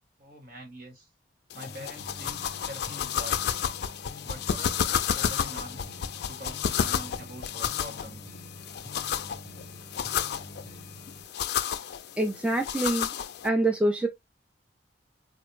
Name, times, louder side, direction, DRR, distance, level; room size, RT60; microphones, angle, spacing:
voice 1, 0.2-1.1 1.5-3.5 4.2-5.9 6.2-8.4, right 1 dB, 55° right, 1.3 m, -44 dB
sound 1, 1.5-13.5, left 8 dB, 65° left, 0.4 m, -31 dB
sound 2, 1.7-11.2, left 1 dB, 20° left, 0.8 m, -46 dB
voice 2, 12.2-13.1 13.4-14.1, right 1 dB, 5° right, 0.4 m, -25 dB
4.0 x 2.0 x 3.0 m
head